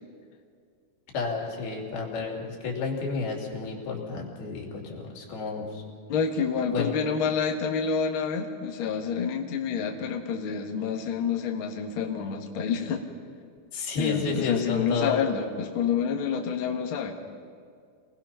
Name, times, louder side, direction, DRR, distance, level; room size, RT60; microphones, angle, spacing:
voice 1, 1.1-5.8 6.7-6.9 13.7-15.2, left 4 dB, 65° left, -1 dB, 4.7 m, -31 dB
voice 2, 6.1-13.0 14.0-17.1, left 6 dB, 45° left, 0 dB, 1.7 m, -28 dB
27.0 x 19.5 x 5.9 m, 2.2 s
omnidirectional pair, 4.8 m